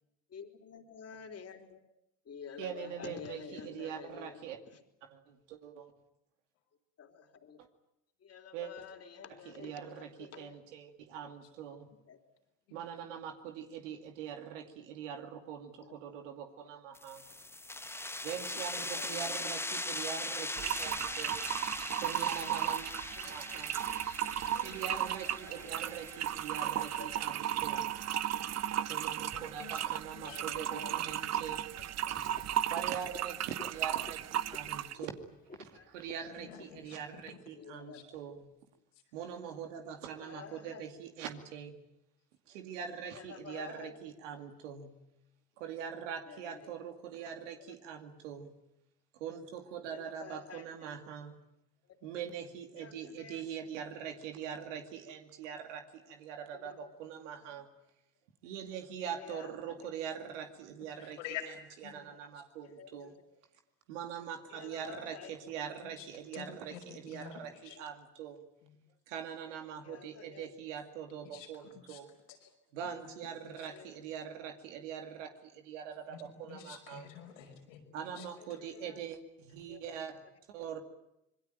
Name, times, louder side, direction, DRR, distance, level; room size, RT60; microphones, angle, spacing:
voice 1, 0.3-1.8 2.3-4.4 4.7-4.8 7.0-7.6 8.2-10.6 11.2-11.4 12.1-12.2 15.8-16.0 16.9-17.0 18.5-19.5 22.1-22.2 22.7-22.9 23.2-23.6 24.8-26.0 26.6-27.1 30.2-31.0 32.1-32.4 34.9-35.1 35.7-36.0 37.6-38.1 40.2-40.8 43.1-44.0 46.3-46.8 47.6-47.8 49.9-50.9 51.9-52.2 52.8-53.4 56.5-56.9 57.4-57.6 59.0-59.9 61.9-62.2 62.6-63.3 64.5-65.7 67.4-67.8 69.5-69.6 69.8-70.5 73.6-74.0 78.1-79.0 79.7-80.0 80.6-80.7, left 6 dB, 45° left, 5 dB, 3.7 m, -50 dB
voice 2, 2.6-4.6 5.1-5.9 7.6-7.7 8.5-8.7 9.5-11.9 12.7-17.3 18.2-21.4 22.0-22.9 23.2-23.7 24.6-27.9 28.4-28.5 28.8-31.7 32.7-35.2 35.6-38.5 39.1-41.8 42.5-45.0 45.6-48.6 49.1-51.4 52.0-57.7 58.4-61.2 61.5-61.6 61.8-63.1 63.9-68.4 69.1-72.1 72.7-77.1 77.9-80.2 80.5-80.8, right 8 dB, 85° right, 5 dB, 2.4 m, -43 dB
sound 1, 17.0-28.3, left 2 dB, 5° left, 1.0 m, -41 dB
sound 2, 20.6-35.0, right 11 dB, 45° right, 0.9 m, -35 dB
voice 3, 23.8-24.2 24.5-24.8 29.3-29.8 30.2-30.4 30.7-31.2 36.3-37.2 37.9-38.0 61.0-61.4 61.8-61.9 62.3-62.4 65.8-66.1 66.3-67.8 71.3-72.0 73.4-73.7 76.1-76.2 76.5-77.8 78.2-78.3, left 9 dB, 85° left, 2 dB, 5.7 m, -48 dB
Frog, 32.1-37.3, left 4 dB, 25° left, 2.8 m, -54 dB
26.0 x 22.0 x 9.2 m, 0.84 s
hypercardioid pair, 70°, 36 cm